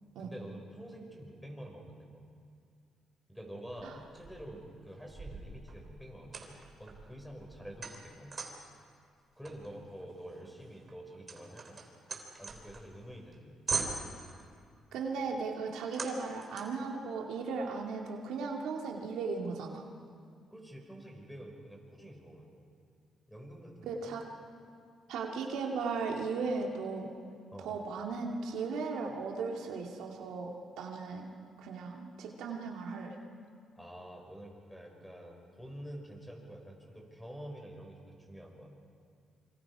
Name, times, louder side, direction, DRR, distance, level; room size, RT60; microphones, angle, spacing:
voice 1, 0.2-2.2 3.3-6.5 6.8-8.4 9.3-11.8 12.4-13.6 20.5-22.6 23.3-24.2 27.5-27.7 33.8-38.8, equal, ahead, 1 dB, 5.7 m, -48 dB
sound 1, 3.7-4.6 5.1-8.8 9.5-13.0 13.3-13.4 13.7-14.5 15.9-16.9, right 4 dB, 40° right, 3.7 m, -41 dB
voice 2, 14.9-19.9 23.8-24.2 25.1-27.1 27.6-31.3 31.6-33.2, right 4 dB, 85° right, 0 dB, 2.5 m, -36 dB
27.0 x 25.5 x 4.9 m, 2.2 s
cardioid pair, 90°, 0 cm